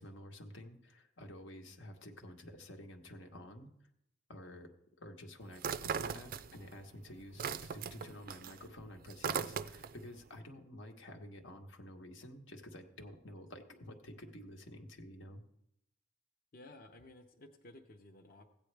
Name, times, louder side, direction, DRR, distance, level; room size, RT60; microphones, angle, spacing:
voice 1, 0.0-3.7 4.3-4.7 5.0-15.4, left 1 dB, 85° left, 3 dB, 1.2 m, -50 dB
sound 1, 5.6-6.8 7.1-10.0, right 6 dB, 50° right, 0.3 m, -39 dB
voice 2, 16.5-18.5, left 2 dB, 50° left, 3 dB, 0.7 m, -55 dB
15.5 x 9.0 x 3.3 m, 0.80 s
head